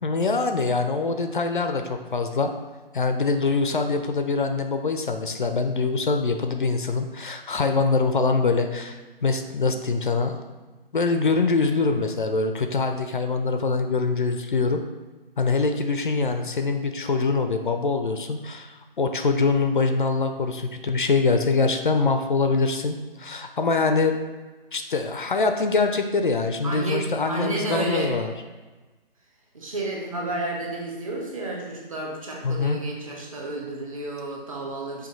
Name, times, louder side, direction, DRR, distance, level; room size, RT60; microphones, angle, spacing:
voice 1, 0.0-2.5 2.9-10.4 10.9-14.8 15.4-24.2 24.7-28.3 32.4-32.8, left 4 dB, 60° left, 6 dB, 0.4 m, -24 dB
voice 2, 26.6-28.1 29.5-35.1, right 2 dB, 35° right, -2 dB, 0.8 m, -31 dB
5.1 x 2.7 x 3.8 m, 1.2 s
figure-of-eight pair, 145°, 29 cm